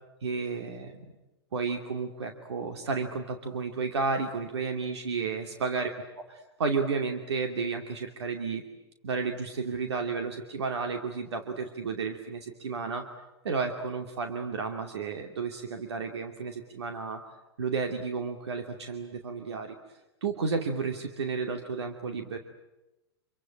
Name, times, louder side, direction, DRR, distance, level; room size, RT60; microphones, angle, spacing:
voice 1, 0.2-1.0 1.5-5.9 6.3-8.6 9.0-13.0 13.4-17.2 17.6-19.8 20.2-22.4, right 4 dB, 80° right, 5 dB, 2.6 m, -32 dB
27.0 x 24.0 x 9.0 m, 1.0 s
hypercardioid pair, 120°, 14 cm